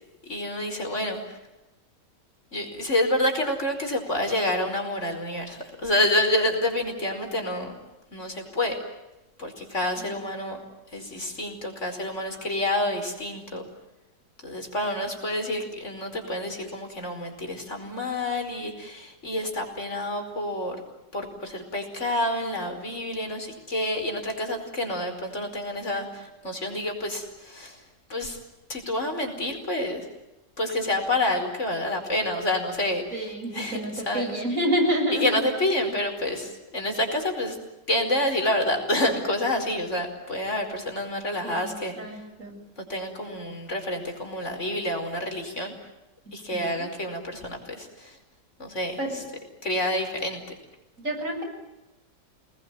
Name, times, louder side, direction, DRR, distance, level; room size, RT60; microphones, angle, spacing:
voice 1, 0.2-1.2 2.5-7.8 8.1-8.8 9.4-10.6 10.9-13.7 14.4-20.8 21.1-27.8 28.1-28.4 28.7-30.1 30.6-33.3 33.5-34.2 35.2-37.6 37.9-41.9 42.8-45.7 46.3-48.2 48.6-49.2 49.6-50.4, left 1 dB, 40° left, 4 dB, 5.2 m, -28 dB
voice 2, 33.1-35.5 41.4-41.7 42.0-42.6 46.3-46.8 49.0-49.2 51.0-51.4, equal, 45° right, 3 dB, 7.6 m, -28 dB
29.0 x 20.5 x 9.2 m, 0.99 s
omnidirectional pair, 1.8 m